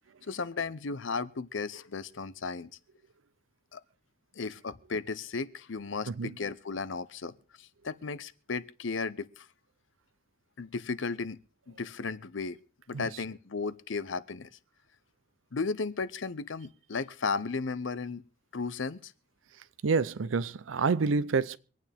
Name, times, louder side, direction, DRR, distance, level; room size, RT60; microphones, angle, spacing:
voice 1, 0.3-2.7 3.7-3.8 4.4-9.5 10.6-11.4 11.7-12.6 12.9-14.5 15.5-18.2 18.5-19.1, left 4 dB, 75° left, 0.7 m, -35 dB
voice 2, 19.8-21.6, right 4 dB, 80° right, 0.5 m, -28 dB
25.5 x 9.2 x 3.5 m
head